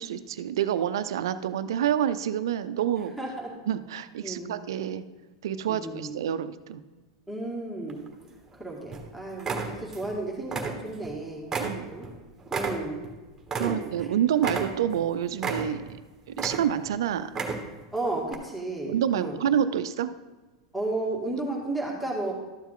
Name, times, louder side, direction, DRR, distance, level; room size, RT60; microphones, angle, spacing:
voice 1, 0.0-3.1 3.7-5.0 5.4-6.8 11.6-11.9 13.5-15.8 16.4-17.4 18.8-20.1, right 9 dB, 75° right, 13 dB, 0.5 m, -28 dB
voice 2, 3.2-3.6 4.2-4.5 5.7-6.1 7.3-8.0 8.6-11.4 11.9-12.1 12.5-13.0 13.6-14.1 17.9-19.4 20.7-22.3, right 2 dB, ahead, -2 dB, 2.0 m, -33 dB
sound 1, 7.9-8.5 8.9-9.1 9.4-10.1 10.4-11.1 11.5-14.1 14.4-15.0 15.4-16.0 16.3-16.9 17.3-17.8 18.3-18.4, right 4 dB, 20° right, 1.4 m, -32 dB
12.5 x 7.1 x 3.8 m, 1.2 s
hypercardioid pair, 100°, 2 cm